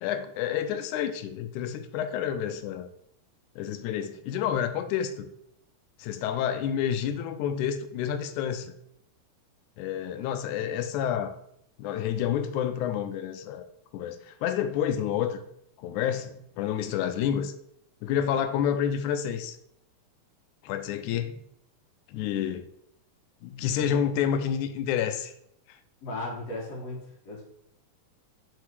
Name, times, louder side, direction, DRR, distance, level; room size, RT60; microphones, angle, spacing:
voice 1, 0.0-2.9 3.6-5.3 6.0-8.7 9.8-11.3 11.8-13.7 13.9-15.4 15.8-17.5 18.0-19.6 20.6-21.4 22.1-22.7 23.4-25.3, left 9 dB, 85° left, 9 dB, 2.0 m, -29 dB
voice 2, 26.0-27.4, left 2 dB, 60° left, -3 dB, 2.9 m, -36 dB
6.8 x 4.1 x 4.6 m, 0.73 s
omnidirectional pair, 3.4 m